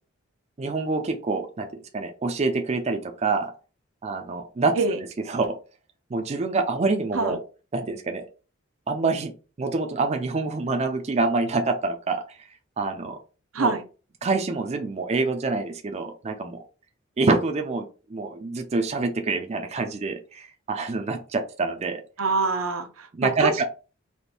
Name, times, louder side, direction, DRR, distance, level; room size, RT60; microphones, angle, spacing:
voice 1, 0.6-3.5 4.0-4.7 5.3-5.5 6.1-7.4 7.7-8.3 8.9-9.3 9.6-12.4 12.8-13.2 13.6-13.8 14.2-16.6 17.2-22.0 23.1-23.6, right 3 dB, 30° right, 5 dB, 0.4 m, -26 dB
voice 2, 22.2-23.6, right 3 dB, 85° right, 7 dB, 0.7 m, -25 dB
4.2 x 2.6 x 3.4 m, 0.34 s
head